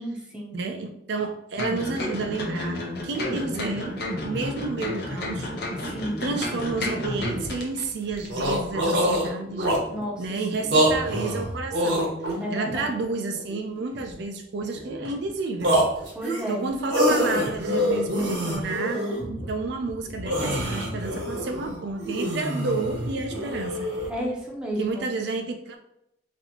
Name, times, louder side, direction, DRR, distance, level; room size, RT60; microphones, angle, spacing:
voice 1, 0.0-0.6 5.9-6.2 9.9-10.2 12.4-12.9 16.2-16.7 24.1-25.1, equal, 5° right, -2 dB, 0.7 m, -32 dB
voice 2, 0.5-3.9 4.2-5.5 6.2-9.7 10.2-15.8 16.4-19.1 19.4-23.9 24.8-25.8, right 3 dB, 65° right, 5 dB, 0.4 m, -31 dB
sound 1, 1.6-7.9 8.2-8.3, left 1 dB, 60° left, 0.7 m, -31 dB
sound 2, 6.3-6.4 6.6-6.7 7.2-7.5 7.9-8.0 8.2-10.0 10.6-12.8 13.3-14.1 14.6-15.3 15.6-19.2 19.6-19.7 20.0-24.1, equal, 80° right, 1.1 m, -26 dB
sound 3, 19.2-22.2 22.6-24.4 24.8-25.0, equal, 30° left, 0.9 m, -40 dB
4.1 x 2.7 x 2.8 m, 0.79 s
head